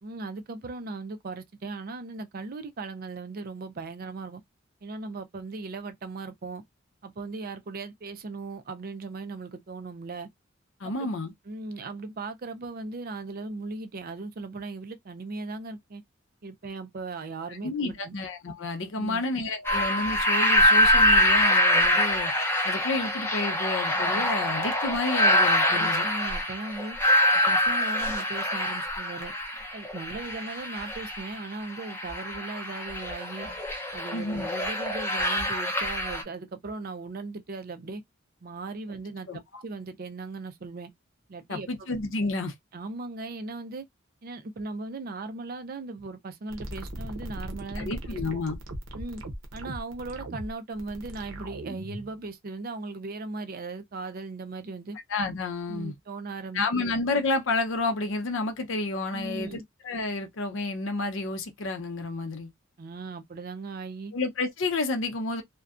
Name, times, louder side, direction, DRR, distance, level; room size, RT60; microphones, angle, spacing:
voice 1, 0.0-4.4 4.8-6.6 7.0-10.3 10.8-11.1 11.5-16.0 16.4-18.2 19.0-19.2 25.7-27.0 27.5-29.3 29.7-33.5 33.9-38.0 38.4-40.9 41.3-41.9 42.7-43.8 44.2-48.4 48.9-49.2 49.5-55.0 55.7-56.8 59.1-59.6 62.8-64.1, right 3 dB, 50° right, 0.5 m, -38 dB
voice 2, 10.8-11.3 17.6-22.3 22.6-26.1 34.1-34.5 39.3-39.6 41.5-42.5 47.8-48.6 55.1-55.9 56.5-59.6 59.8-62.5 64.1-65.4, left 3 dB, 70° left, 0.6 m, -30 dB
sound 1, 19.6-36.2, left 1 dB, 10° left, 0.6 m, -25 dB
sound 2, 46.5-52.1, right 1 dB, 75° right, 0.8 m, -38 dB
2.5 x 2.2 x 2.4 m
head